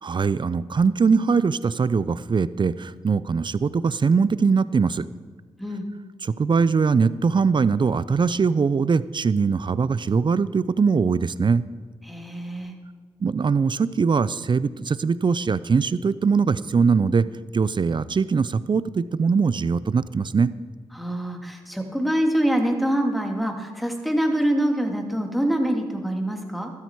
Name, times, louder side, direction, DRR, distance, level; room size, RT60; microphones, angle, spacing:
voice 1, 0.0-5.1 6.2-11.6 13.2-17.3 17.5-20.5, right 5 dB, 45° right, 17 dB, 0.6 m, -21 dB
voice 2, 12.1-12.7 20.9-26.7, right 1 dB, ahead, 2 dB, 2.6 m, -25 dB
13.0 x 12.0 x 4.7 m, 1.4 s
supercardioid pair, 45°, 11 cm